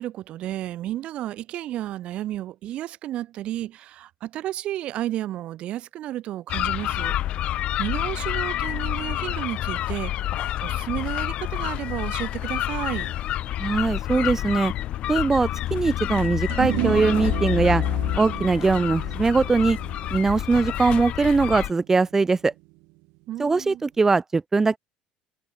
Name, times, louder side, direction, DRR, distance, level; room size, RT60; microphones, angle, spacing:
voice 1, 0.0-7.2 7.8-13.1 23.3-23.8, right 13 dB, 60° right, 1.8 m, -32 dB
sound 1, 6.5-21.7, left 13 dB, 60° left, 1.3 m, -28 dB
voice 2, 13.6-14.7 15.1-17.8 18.1-19.8 20.1-22.5 23.4-24.8, right 4 dB, 20° right, 1.1 m, -21 dB
sound 2, 16.5-23.0, right 26 dB, 85° right, 1.4 m, -34 dB
cardioid pair, 115°, 2 cm